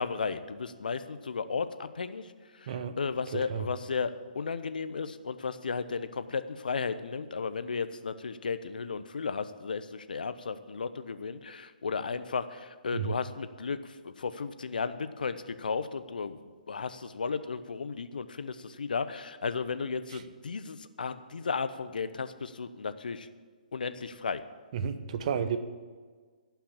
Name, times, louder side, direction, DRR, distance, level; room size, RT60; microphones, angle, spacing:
voice 1, 0.0-2.3 2.5-23.3 23.7-24.4, left 5 dB, 75° left, 12 dB, 0.8 m, -34 dB
voice 2, 2.7-3.0 3.3-3.7 12.9-13.1 20.1-20.2 24.7-25.6, right 7 dB, 50° right, 10 dB, 1.0 m, -32 dB
16.0 x 5.8 x 8.7 m, 1.5 s
hypercardioid pair, 135°, 5 cm